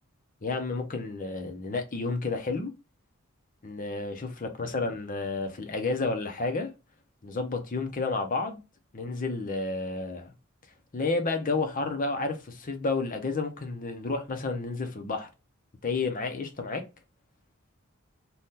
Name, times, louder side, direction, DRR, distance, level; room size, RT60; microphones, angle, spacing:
voice 1, 0.4-2.7 3.6-6.7 7.2-8.6 8.9-10.3 10.9-15.3 15.8-16.9, left 3 dB, 40° left, 0.7 m, -31 dB
2.8 x 2.4 x 3.6 m
head